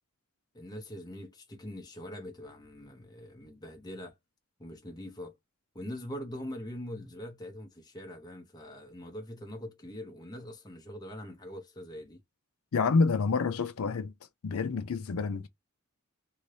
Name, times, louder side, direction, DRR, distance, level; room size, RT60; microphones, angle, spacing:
voice 1, 0.5-4.2 4.6-5.4 5.7-12.2, left 1 dB, 20° left, 0.7 m, -43 dB
voice 2, 12.7-14.1 14.4-15.5, left 4 dB, 75° left, 0.5 m, -28 dB
2.8 x 2.6 x 3.1 m
head